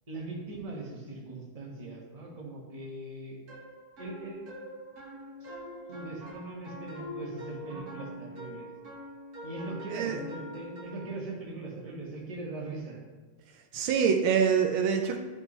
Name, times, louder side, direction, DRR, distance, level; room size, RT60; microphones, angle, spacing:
voice 1, 0.1-3.4 4.0-4.4 5.4-5.5 5.9-8.7 9.4-13.0, right 2 dB, 20° right, -3 dB, 1.2 m, -40 dB
sound 1, 3.5-11.2, equal, 50° right, 1.7 m, -44 dB
voice 2, 13.5-15.2, right 7 dB, 80° right, 4 dB, 1.4 m, -25 dB
11.0 x 5.3 x 3.2 m, 1.3 s
omnidirectional pair, 2.3 m